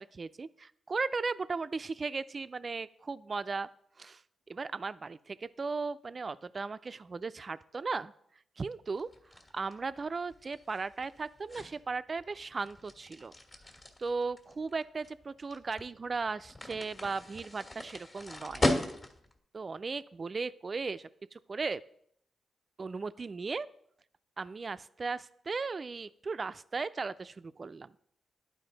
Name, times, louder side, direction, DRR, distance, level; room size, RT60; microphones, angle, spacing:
voice 1, 0.0-3.7 4.0-4.2 4.5-8.1 8.6-9.1 9.5-13.3 14.0-18.7 19.5-21.8 22.8-23.7 24.4-27.9, right 4 dB, 45° right, 15 dB, 0.3 m, -36 dB
sound 1, 9.0-19.4, left 1 dB, 40° left, 1.6 m, -38 dB
11.0 x 4.6 x 3.9 m, 0.70 s
cardioid pair, 65°, 0 cm